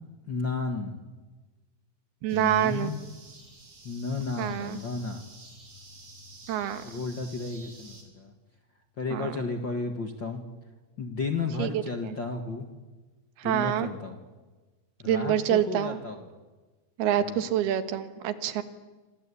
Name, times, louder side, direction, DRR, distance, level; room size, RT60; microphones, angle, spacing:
voice 1, 0.3-1.0 2.3-3.0 3.8-5.2 6.8-8.3 9.0-10.4 11.0-12.7 13.4-14.2 15.0-16.3 17.2-17.4, left 4 dB, 45° left, 5 dB, 1.6 m, -33 dB
voice 2, 2.2-2.9 4.4-4.8 6.5-6.8 9.1-9.4 11.6-11.7 12.0-12.2 13.4-13.9 15.1-16.0 17.0-18.6, right 11 dB, 85° right, 10 dB, 3.4 m, -26 dB
sound 1, 2.3-8.0, right 1 dB, 45° right, 6.0 m, -50 dB
27.0 x 26.0 x 8.5 m, 1.3 s
omnidirectional pair, 4.4 m